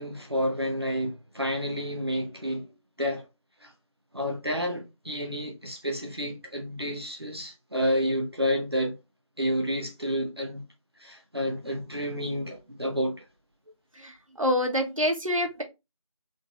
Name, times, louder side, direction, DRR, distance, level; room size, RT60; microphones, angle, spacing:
voice 1, 0.0-2.7 3.0-3.2 3.6-3.7 4.1-9.0 9.4-10.6 11.0-13.2, equal, 50° right, 0.8 m, -30 dB
voice 2, 13.9-15.6, left 1 dB, 75° right, 1.4 m, -27 dB
3.9 x 2.6 x 3.5 m
figure-of-eight pair, 180°, 17 cm